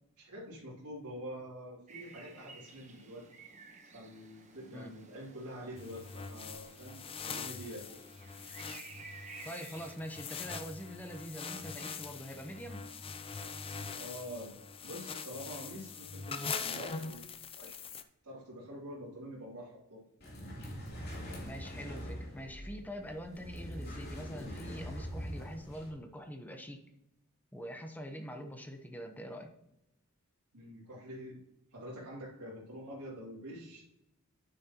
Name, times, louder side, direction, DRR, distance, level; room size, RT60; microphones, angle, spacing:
voice 1, 0.2-3.6 3.9-7.9 13.9-17.2 17.5-17.8 18.2-20.0 30.5-31.4 31.7-33.8, equal, 90° right, -6 dB, 3.2 m, -46 dB
sound 1, 1.9-10.0, right 4 dB, 35° right, 1.1 m, -53 dB
sound 2, 5.8-18.0, left 5 dB, 25° left, 0.5 m, -43 dB
voice 2, 9.4-12.9 21.4-26.9 27.5-29.5, equal, 10° left, 5 dB, 0.9 m, -44 dB
sound 3, 20.2-25.9, equal, 45° left, 3.0 m, -43 dB
9.2 x 8.6 x 3.0 m, 0.86 s
head